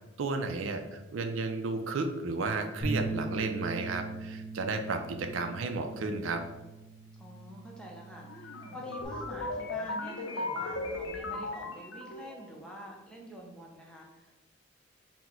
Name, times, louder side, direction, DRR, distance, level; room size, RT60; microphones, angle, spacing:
voice 1, 0.2-6.4, right 3 dB, 75° right, 6 dB, 0.4 m, -33 dB
Bass guitar, 2.8-9.1, right 2 dB, 20° left, 1.0 m, -40 dB
voice 2, 7.2-14.4, equal, 5° left, -2 dB, 0.6 m, -47 dB
sound 1, 8.3-12.4, left 2 dB, 70° left, 0.5 m, -37 dB
4.2 x 2.1 x 4.3 m, 1.1 s
head